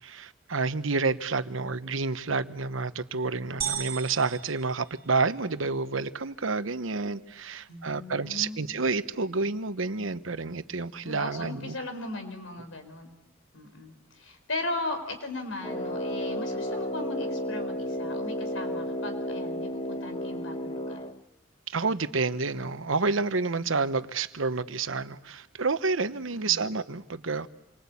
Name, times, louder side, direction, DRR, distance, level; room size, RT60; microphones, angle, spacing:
voice 1, 0.0-11.7 21.7-27.5, right 4 dB, 85° right, 1.1 m, -29 dB
sound 1, 3.6-5.6, right 9 dB, 50° right, 2.4 m, -36 dB
voice 2, 7.7-8.6 11.0-13.1 13.5-21.0 26.3-26.6, left 2 dB, 90° left, 4.6 m, -37 dB
Brass instrument, 15.6-21.2, left 1 dB, 30° left, 1.1 m, -32 dB
27.5 x 24.0 x 8.5 m
head